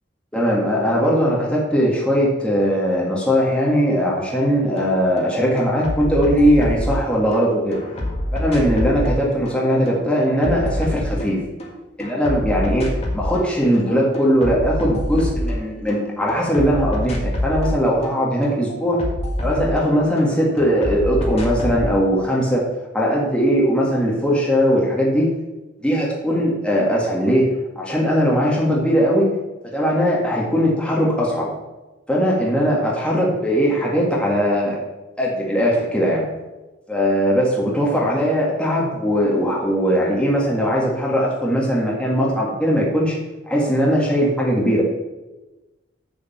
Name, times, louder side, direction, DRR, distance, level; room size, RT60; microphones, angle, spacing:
voice 1, 0.3-7.8 8.3-11.4 12.0-12.9 13.1-19.0 19.4-22.6 22.9-25.3 25.8-29.3 29.7-31.5 32.1-34.8 35.2-36.3 36.9-43.2 43.5-44.8, equal, 5° left, -4 dB, 1.9 m, -19 dB
sound 1, 4.8-4.9 5.2-7.4 7.7-11.7 12.0-13.5 13.7-16.0 16.3-20.3 20.6-21.9, left 1 dB, 35° left, 1.7 m, -26 dB
8.2 x 7.4 x 5.6 m, 1.1 s
head